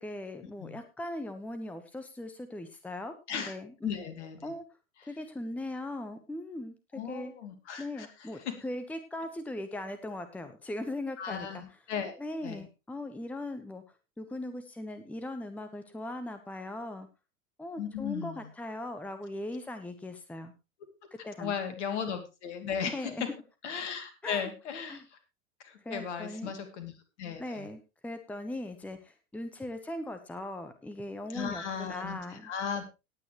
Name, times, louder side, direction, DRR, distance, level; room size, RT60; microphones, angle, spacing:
voice 1, 0.0-4.0 4.4-4.6 5.0-7.3 7.8-11.6 12.2-13.8 14.2-17.1 17.6-20.5 21.2-21.6 22.9-23.2 24.2-24.5 24.9-25.0 25.8-26.5 27.4-32.5, left 1 dB, 5° left, 9 dB, 1.1 m, -39 dB
voice 2, 3.8-4.4 6.9-8.1 8.5-8.6 11.2-12.2 12.4-12.6 17.8-18.5 21.4-23.3 23.6-25.0 25.6-26.9 27.2-27.7 31.3-32.8, left 7 dB, 55° left, 8 dB, 2.7 m, -36 dB
18.5 x 9.1 x 3.1 m, 0.27 s
figure-of-eight pair, 90°, 41 cm